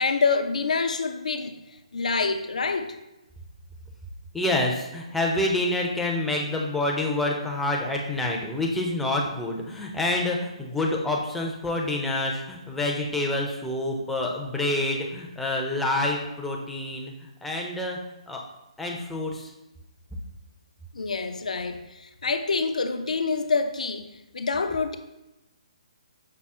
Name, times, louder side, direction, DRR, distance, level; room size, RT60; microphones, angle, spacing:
voice 1, 0.0-1.6 1.9-3.0 20.9-24.1 24.3-25.0, left 4 dB, 80° left, 8 dB, 0.4 m, -26 dB
voice 2, 4.3-18.0 18.3-18.4 18.8-19.5, left 2 dB, 5° left, -1 dB, 0.4 m, -27 dB
5.5 x 2.0 x 3.6 m, 0.96 s
hypercardioid pair, 150°, 4 cm